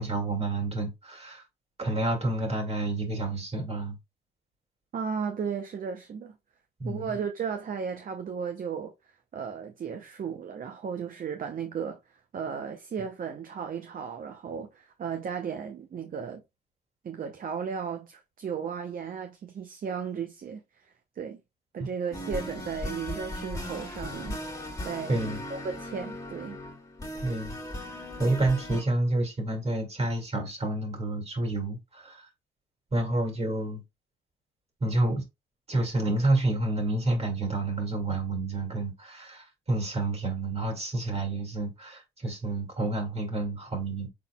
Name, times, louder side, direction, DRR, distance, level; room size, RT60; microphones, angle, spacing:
voice 1, 0.0-1.4 1.8-4.0 6.8-7.1 25.1-25.4 27.2-27.6 28.2-32.3 32.9-33.8 34.8-35.3 35.7-44.1, right 2 dB, 35° right, 2.2 m, -29 dB
voice 2, 4.9-6.4 6.8-8.9 9.3-12.0 12.3-16.4 17.0-21.4 21.7-26.6, right 6 dB, 50° right, 0.7 m, -35 dB
sound 1, 22.1-28.8, left 1 dB, 20° left, 2.0 m, -37 dB
5.7 x 4.0 x 2.3 m
cardioid pair, 75°, 18 cm